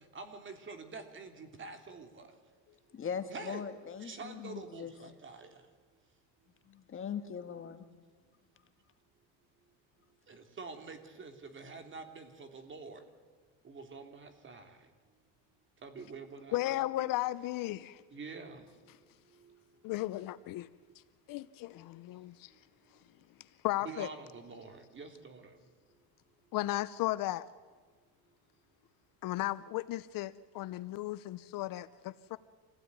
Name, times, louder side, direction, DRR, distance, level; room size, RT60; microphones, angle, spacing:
voice 1, 0.1-2.2 3.3-3.6 4.0-5.5 10.3-13.0 13.6-14.8 15.8-16.8 18.1-18.6 23.8-25.5, right 4 dB, 30° right, 6 dB, 3.2 m, -46 dB
voice 2, 2.7-4.9 6.7-7.9, left 7 dB, 30° left, 8 dB, 1.6 m, -40 dB
voice 3, 16.5-18.0 19.8-20.7 21.3-22.5 23.6-24.1 26.5-27.5 29.2-32.4, left 16 dB, 55° left, 16 dB, 0.7 m, -35 dB
26.5 x 16.5 x 9.7 m, 1.5 s
cardioid pair, 125°, 40 cm